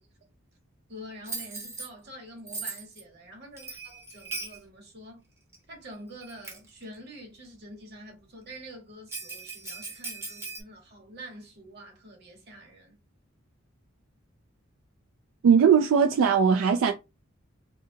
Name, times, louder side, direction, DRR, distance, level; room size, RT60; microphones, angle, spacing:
voice 1, 0.9-5.2 5.7-13.0, equal, 55° right, 1.1 m, -46 dB
Bell, 1.2-1.9 2.5-3.0 3.6-4.6 5.5-5.6 6.2-6.7 9.1-10.6, right 3 dB, 15° right, 0.7 m, -38 dB
voice 2, 15.4-16.9, right 7 dB, 85° right, 0.3 m, -19 dB
2.8 x 2.3 x 2.7 m
head